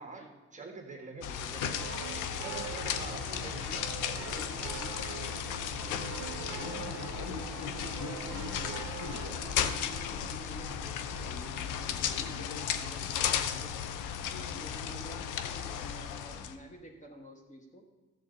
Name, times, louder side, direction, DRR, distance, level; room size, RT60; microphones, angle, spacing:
voice 1, 0.0-0.3 2.7-8.6 9.0-13.7 14.2-17.9, right 1 dB, 25° left, 1 dB, 1.6 m, -50 dB
voice 2, 0.5-2.0 2.4-3.6, right 3 dB, 25° right, 2 dB, 1.6 m, -45 dB
sound 1, 1.2-16.5, left 8 dB, 90° left, 0.7 m, -35 dB
sound 2, 1.6-9.6, right 10 dB, 60° right, 0.6 m, -44 dB
12.5 x 7.4 x 4.0 m, 1.2 s
cardioid pair, 90°, 30 cm